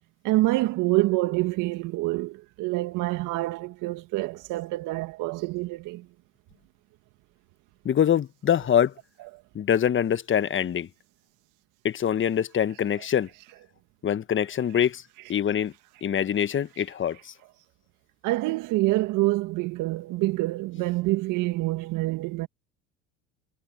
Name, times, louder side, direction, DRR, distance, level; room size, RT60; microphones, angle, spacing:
voice 1, 0.2-6.0 18.2-22.5, right 19 dB, 65° right, 1.9 m, -26 dB
voice 2, 7.8-8.9 9.5-10.9 11.8-13.3 14.0-15.0 15.3-15.7 16.0-17.3, left 9 dB, 35° left, 1.4 m, -24 dB
hypercardioid pair, 75°, 34 cm